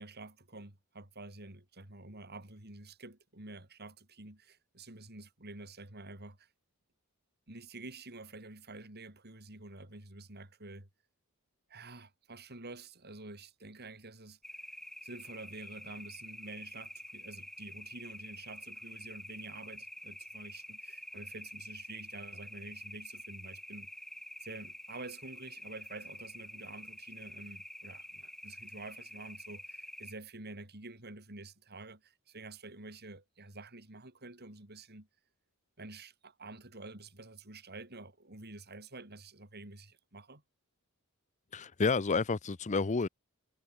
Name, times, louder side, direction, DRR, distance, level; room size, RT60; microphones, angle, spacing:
voice 1, 0.0-6.5 7.5-10.9 11.7-14.4 15.0-23.9 24.4-35.1 35.8-40.4, right 2 dB, 50° right, 4.8 m, -49 dB
sound 1, 14.4-30.1, equal, ahead, 0.9 m, -48 dB
voice 2, 41.5-43.1, left 4 dB, 35° left, 0.6 m, -30 dB
head